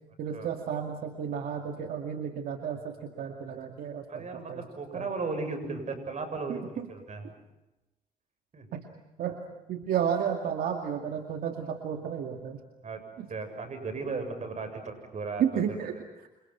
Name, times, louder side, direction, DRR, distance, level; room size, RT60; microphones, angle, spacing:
voice 1, 0.2-4.6 4.9-5.1 6.5-6.9 8.7-8.8 9.2-9.4 9.7-12.6 13.2-13.3 15.4-15.9 16.2-16.3, right 8 dB, 85° right, 4 dB, 2.3 m, -32 dB
voice 2, 4.1-7.3 8.5-8.7 12.8-15.8, right 4 dB, 55° right, 8 dB, 7.7 m, -36 dB
29.0 x 28.0 x 5.9 m, 1.0 s
cardioid pair, 75°, 15 cm